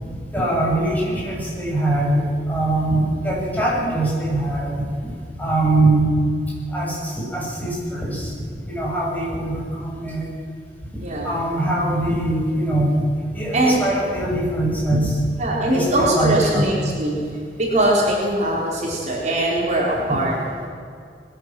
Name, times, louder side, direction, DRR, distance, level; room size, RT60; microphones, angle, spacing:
voice 1, 0.0-4.9 5.4-6.2 6.7-8.3 8.7-10.3 11.2-13.1 13.3-15.2 15.7-16.8 20.1-20.2, right 1 dB, 10° left, -5 dB, 7.7 m, -22 dB
voice 2, 11.0-11.4 13.5-13.8 15.4-17.2 17.6-20.3, right 1 dB, 45° right, -3 dB, 4.1 m, -21 dB
21.0 x 17.5 x 7.7 m, 2.3 s
head